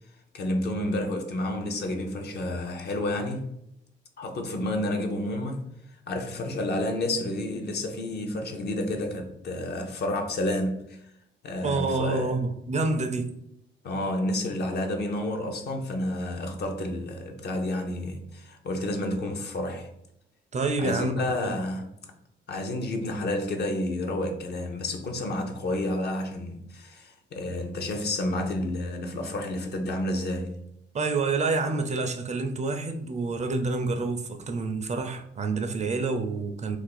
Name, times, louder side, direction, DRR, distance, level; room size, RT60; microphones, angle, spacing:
voice 1, 0.3-3.5 4.2-11.0 11.4-12.3 13.8-19.9 20.8-21.9 22.5-30.6, left 1 dB, 55° left, 0.7 m, -30 dB
voice 2, 11.6-13.3 20.5-21.5 30.9-36.8, right 3 dB, 35° right, 0.4 m, -28 dB
2.5 x 2.3 x 3.9 m
cardioid pair, 90°, 20 cm